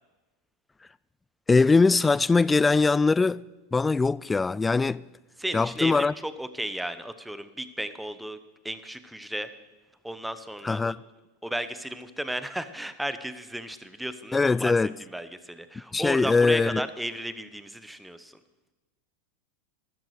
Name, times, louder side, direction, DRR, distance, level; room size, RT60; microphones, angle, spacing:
voice 1, 1.5-3.4 3.7-5.0 5.5-6.1 10.6-11.0 14.3-14.9 15.9-16.8, left 4 dB, 15° left, 0.3 m, -21 dB
voice 2, 5.4-8.4 8.6-9.5 10.0-11.0 11.4-14.7 15.1-18.4, right 1 dB, 5° right, 1.0 m, -34 dB
13.5 x 13.5 x 4.9 m
hypercardioid pair, 95°, 0 cm